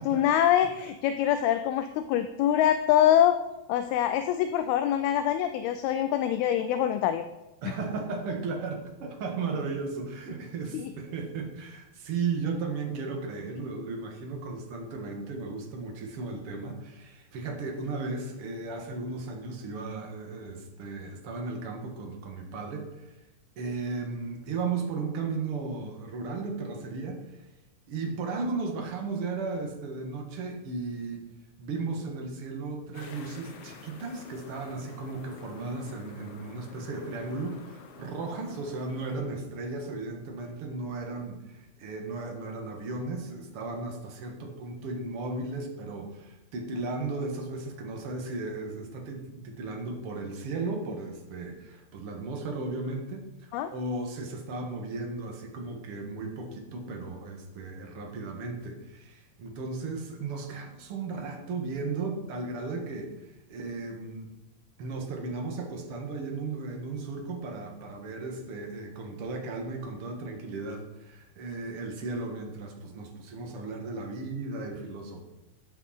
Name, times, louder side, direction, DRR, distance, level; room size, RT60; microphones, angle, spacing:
voice 1, 0.0-3.4 3.7-7.2 7.7-7.8 10.7-10.9 53.5-53.7, left 10 dB, 85° left, 9 dB, 2.2 m, -24 dB
voice 2, 7.6-23.1 23.5-27.4 27.9-31.2 31.6-64.3 64.8-75.2, right 3 dB, 60° right, 2 dB, 1.5 m, -35 dB
sound 1, 32.9-39.2, left 4 dB, 65° left, 2.0 m, -49 dB
13.5 x 9.0 x 4.3 m, 0.98 s
omnidirectional pair, 5.0 m